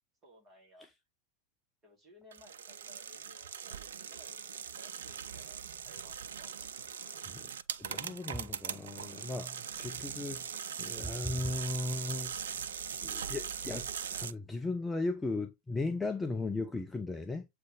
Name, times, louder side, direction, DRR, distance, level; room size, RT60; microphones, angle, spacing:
voice 1, 0.2-0.9 1.8-6.5 16.1-16.3, equal, 20° right, 2.9 m, -59 dB
sound 1, 2.3-14.3, right 7 dB, 65° right, 0.4 m, -40 dB
voice 2, 7.8-10.4 10.8-12.3 13.0-17.5, left 2 dB, 10° left, 0.7 m, -36 dB
7.7 x 3.4 x 3.6 m
figure-of-eight pair, 90°, 0 cm